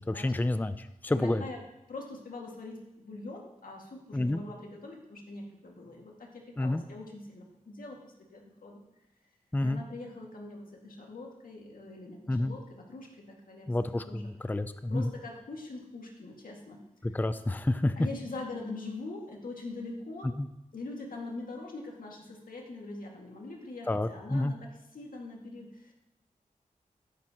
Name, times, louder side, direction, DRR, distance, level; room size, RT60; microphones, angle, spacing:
voice 1, 0.0-1.4 4.1-4.4 6.6-6.8 9.5-9.8 12.3-12.5 13.7-15.1 17.0-18.0 20.4-20.5 23.9-24.5, left 1 dB, 15° left, 11 dB, 0.5 m, -29 dB
voice 2, 1.1-1.6 1.9-8.8 9.6-13.7 14.0-14.3 14.9-16.8 17.9-20.3 20.7-24.6 24.9-25.9, left 2 dB, 85° left, -1 dB, 2.1 m, -43 dB
13.5 x 10.5 x 3.0 m, 0.91 s
wide cardioid pair, 70°, 14 cm